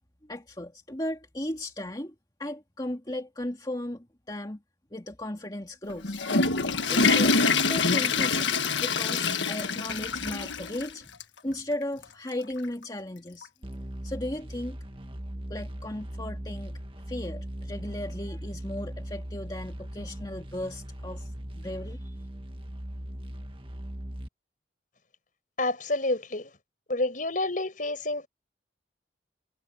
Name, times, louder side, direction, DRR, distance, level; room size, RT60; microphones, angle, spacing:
voice 1, 0.3-2.1 2.4-4.6 4.9-6.2 6.8-13.5 14.0-14.8 15.5-16.8 17.1-22.2, left 1 dB, 20° left, 2.3 m, -36 dB
Water / Toilet flush, 5.9-10.9 11.2-11.3 12.0-12.1 13.4-13.5, left 4 dB, 85° left, 1.6 m, -25 dB
sound 1, 13.6-24.3, equal, 30° right, 1.8 m, -39 dB
voice 2, 25.6-26.5 26.9-28.3, left 2 dB, 45° left, 5.5 m, -29 dB
head